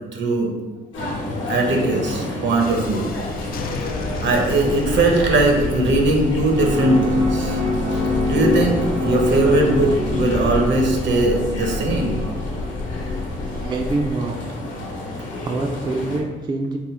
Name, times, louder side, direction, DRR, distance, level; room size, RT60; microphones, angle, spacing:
voice 1, 0.1-0.5 1.5-3.2 3.8-3.9 4.2-7.6 8.2-12.2, right 2 dB, 65° right, 1 dB, 0.8 m, -20 dB
sound 1, 0.9-16.2, left 1 dB, 75° left, 1.0 m, -31 dB
Thunderstorm, 2.6-14.1, left 3 dB, 50° left, 0.4 m, -30 dB
sound 2, 6.2-14.8, left 2 dB, 85° right, 1.5 m, -27 dB
voice 2, 13.6-14.4 15.1-16.8, right 2 dB, 25° right, 2 dB, 0.3 m, -25 dB
3.7 x 2.0 x 4.3 m, 1.3 s
cardioid pair, 90°, 20 cm